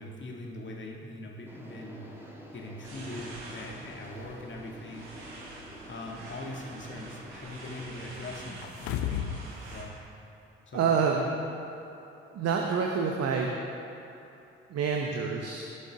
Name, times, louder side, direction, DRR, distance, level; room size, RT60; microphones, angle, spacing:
voice 1, 0.0-2.0 2.5-5.1 5.9-10.0 10.7-10.8, left 1 dB, 35° left, -1 dB, 2.0 m, -41 dB
sound 1, 1.5-7.8, equal, 5° right, 2.1 m, -48 dB
sound 2, 2.8-9.8, right 2 dB, 75° right, 1.4 m, -46 dB
Fall on carpet, 8.6-9.5 9.8-9.9, left 10 dB, 65° left, 0.6 m, -32 dB
voice 2, 10.7-11.2 12.3-13.5 14.7-15.6, right 6 dB, 50° right, 1 dB, 1.0 m, -27 dB
16.5 x 7.7 x 3.6 m, 3.0 s
figure-of-eight pair, 45°, 32 cm